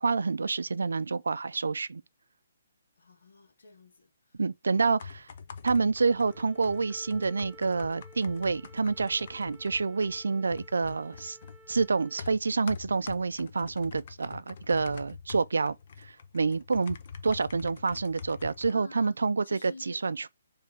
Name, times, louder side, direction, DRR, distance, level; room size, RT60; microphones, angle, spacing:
voice 1, 0.0-2.0 4.4-5.3 5.6-11.4 11.7-17.0 17.2-20.3, right 4 dB, 85° right, 0.4 m, -28 dB
voice 2, 3.0-4.4 4.7-5.0 16.8-16.9 18.7-19.2 19.4-20.0, left 3 dB, 75° left, 1.7 m, -52 dB
sound 1, 5.0-18.7, left 6 dB, 50° left, 0.6 m, -45 dB
Wind instrument woodwind instrument, 6.0-12.3, right 2 dB, 5° left, 0.8 m, -55 dB
4.7 x 3.3 x 3.4 m
hypercardioid pair, 160°, 0 cm